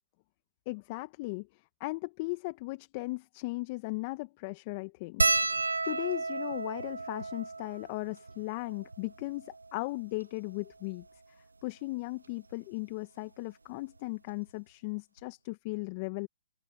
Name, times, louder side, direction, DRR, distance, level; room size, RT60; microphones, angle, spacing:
voice 1, 0.7-1.5 1.8-5.5 5.8-11.0 11.6-16.3, left 24 dB, 40° left, 1.4 m, -37 dB
sound 1, 5.2-9.8 10.5-10.6 10.8-11.0 12.3-12.5 14.0-14.1 14.3-14.5, right 3 dB, 85° right, 0.6 m, -32 dB
open air
hypercardioid pair, 130°, 0 cm